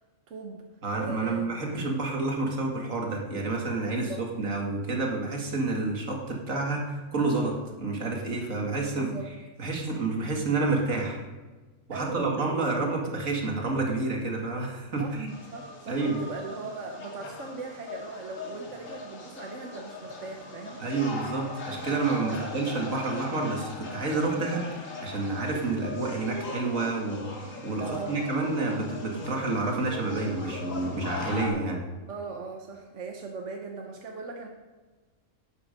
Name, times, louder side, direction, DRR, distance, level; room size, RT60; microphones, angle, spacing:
voice 1, 0.3-0.7 1.0-2.0 3.9-4.2 8.9-9.3 11.9-12.7 15.0-15.2 15.5-21.0 22.2-22.6 27.8-28.2 32.1-34.5, right 4 dB, 65° right, 2 dB, 1.4 m, -39 dB
voice 2, 0.8-4.1 4.4-9.1 9.6-11.2 11.9-15.3 15.9-16.2 20.8-31.8, right 3 dB, 80° right, 0 dB, 2.4 m, -29 dB
sound 1, 15.3-31.5, left 3 dB, 80° left, 2.4 m, -40 dB
12.0 x 9.7 x 5.2 m, 1.3 s
omnidirectional pair, 1.4 m